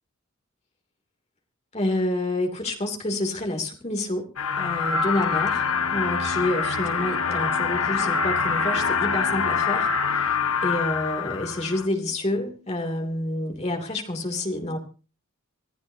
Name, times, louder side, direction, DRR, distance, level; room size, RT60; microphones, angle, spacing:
voice 1, 1.7-4.3 4.6-5.6 5.9-10.3 10.6-14.8, left 1 dB, 30° left, 2.9 m, -28 dB
sound 1, 4.4-11.9, left 5 dB, 80° left, 1.4 m, -25 dB
26.5 x 15.0 x 2.8 m
head